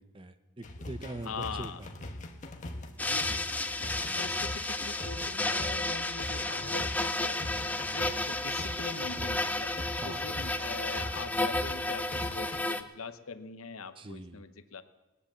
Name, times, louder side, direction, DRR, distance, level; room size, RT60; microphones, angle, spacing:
voice 1, 0.0-1.9 4.1-4.5 9.9-10.3 14.0-14.5, right 2 dB, 25° right, 10 dB, 0.8 m, -43 dB
sound 1, 0.6-12.6, left 1 dB, 35° left, 1.1 m, -42 dB
voice 2, 1.2-1.8 3.0-7.4 7.9-14.8, left 5 dB, 75° left, 11 dB, 0.9 m, -42 dB
sound 2, 3.0-12.8, left 2 dB, 5° left, 0.5 m, -32 dB
18.0 x 10.0 x 7.4 m, 1.1 s
head